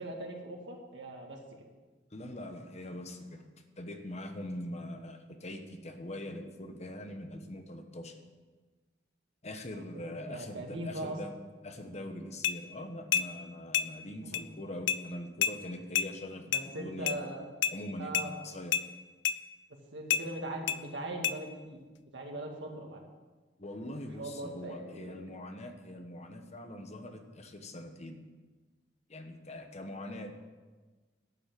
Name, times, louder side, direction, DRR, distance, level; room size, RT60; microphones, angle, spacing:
voice 1, 0.0-1.4 9.9-11.2 14.2-14.4 16.5-17.5 18.0-18.4 19.9-21.8 22.1-23.0 24.2-25.2, right 1 dB, 75° right, 1 dB, 2.2 m, -40 dB
voice 2, 2.1-3.5 3.8-8.2 9.4-11.3 11.6-17.2 17.7-18.1 18.4-18.7 23.6-28.2 29.1-30.3, left 1 dB, 40° left, 6 dB, 1.2 m, -42 dB
sound 1, 12.4-12.6 13.1-13.3 13.7-13.9 14.3-14.4 14.9-15.0 15.4-15.6 15.9-16.1 16.5-16.7 17.1-17.2 17.6-17.8 18.1-18.3 18.7-18.9 19.2-19.4 20.1-20.2 20.7-20.8 21.2-21.4, left 9 dB, 70° left, 0.5 m, -29 dB
12.0 x 7.1 x 7.8 m, 1.3 s
head